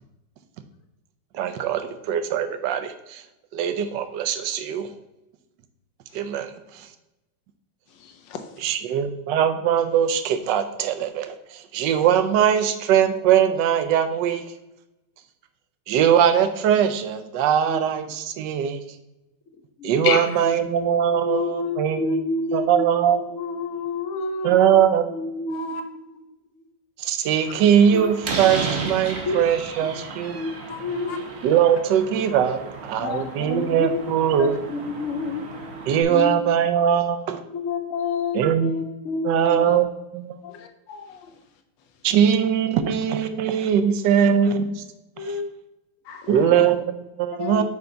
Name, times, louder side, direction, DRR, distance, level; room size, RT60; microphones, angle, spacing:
voice 1, 1.3-3.2 3.5-4.9 6.1-6.9 8.6-14.4 15.9-18.8 19.8-22.1 22.5-23.2 24.4-25.0 27.0-30.4 31.4-34.6 35.9-37.4 38.3-38.7 39.2-40.4 42.0-44.7 45.2-45.4 46.3-47.6, right 9 dB, 75° right, 10 dB, 1.2 m, -21 dB
voice 2, 8.0-8.4 20.0-20.4 25.5-25.8 30.7-30.8 31.1-31.2 40.6-41.3 46.1-46.4, left 7 dB, 80° left, 6 dB, 1.5 m, -30 dB
voice 3, 20.4-24.8 25.1-26.2 26.6-26.7 27.9-28.0 29.3-29.4 29.8-30.0 30.3-31.2 33.0-34.0 34.4-35.5 36.1-36.4 37.5-39.8 40.4-40.6 44.5-44.6 45.2-45.5 46.2-46.7 47.3-47.6, left 3 dB, 60° left, 5 dB, 0.9 m, -29 dB
Slam, 27.4-36.0, right 4 dB, 50° right, 0.8 m, -34 dB
5.7 x 5.1 x 3.8 m, 0.94 s
omnidirectional pair, 2.0 m